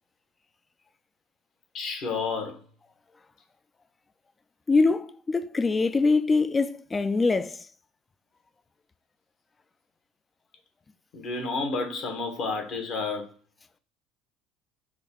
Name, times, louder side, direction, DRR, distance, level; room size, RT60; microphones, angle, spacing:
voice 1, 1.7-2.6 11.1-13.3, left 4 dB, 55° left, 1.0 m, -30 dB
voice 2, 4.7-7.6, left 3 dB, 25° left, 0.3 m, -23 dB
3.6 x 2.2 x 3.4 m
hypercardioid pair, 70°, 0 cm